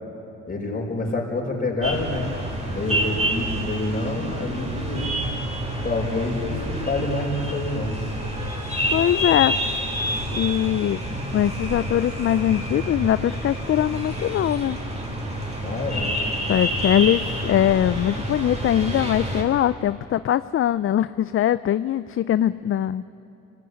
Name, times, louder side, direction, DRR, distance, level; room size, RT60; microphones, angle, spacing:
voice 1, 0.5-2.3 2.7-5.0 5.8-8.0 15.6-16.2, left 2 dB, 30° left, -1 dB, 5.9 m, -27 dB
sound 1, 1.8-19.4, equal, 20° right, 4.4 m, -28 dB
voice 2, 8.9-9.5 10.3-11.0 11.3-14.8 16.5-23.0, left 11 dB, 45° left, 15 dB, 0.4 m, -22 dB
24.5 x 18.0 x 9.8 m, 2.8 s
cardioid pair, 90°, 30 cm